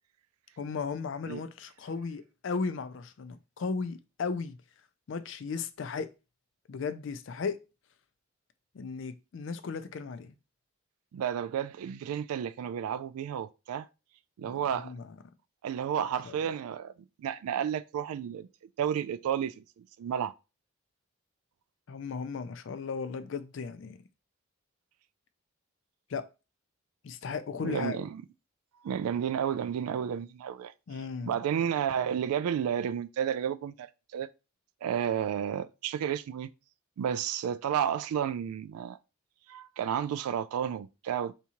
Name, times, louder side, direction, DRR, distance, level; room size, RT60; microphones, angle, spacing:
voice 1, 0.6-4.6 5.1-6.1 6.7-7.6 8.7-10.3 14.4-15.1 16.2-16.4 21.9-24.0 26.1-26.2 27.0-28.0 30.9-31.4, left 5 dB, 60° left, 0.4 m, -36 dB
voice 2, 11.1-13.9 14.4-14.9 15.6-16.9 17.2-18.5 18.8-20.3 27.6-28.2 28.8-30.7 31.2-33.9 34.1-34.3 34.8-36.5 37.0-39.0 39.5-41.3, right 8 dB, 90° right, 0.3 m, -31 dB
3.5 x 2.8 x 2.9 m
head